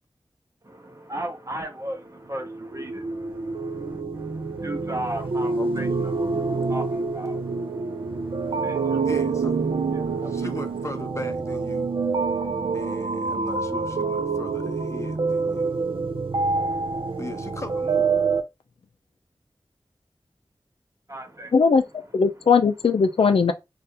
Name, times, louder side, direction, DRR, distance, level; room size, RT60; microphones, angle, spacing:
voice 1, 0.6-9.1 9.6-10.9 21.1-22.1, right 1 dB, 35° right, 0.8 m, -37 dB
sound 1, 2.4-18.4, right 4 dB, 70° right, 0.5 m, -26 dB
voice 2, 9.0-9.7 10.3-11.9 12.7-15.7 17.2-18.1, left 2 dB, 30° left, 0.7 m, -38 dB
voice 3, 21.5-23.5, left 5 dB, 75° left, 0.4 m, -19 dB
3.3 x 2.4 x 2.8 m
wide cardioid pair, 75°, 9 cm